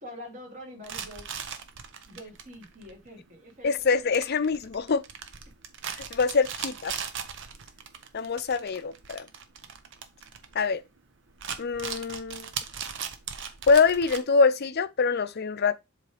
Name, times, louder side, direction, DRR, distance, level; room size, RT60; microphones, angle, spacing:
voice 1, 0.0-1.3 2.1-4.1, left 1 dB, 40° right, 2.6 m, -45 dB
sound 1, 0.8-11.0 11.3-14.2, right 7 dB, 65° right, 0.9 m, -39 dB
voice 2, 3.6-5.0 6.1-6.9 8.1-9.3 10.5-10.8 11.6-12.5 13.7-15.8, left 4 dB, 50° left, 0.5 m, -24 dB
7.6 x 3.3 x 4.9 m
head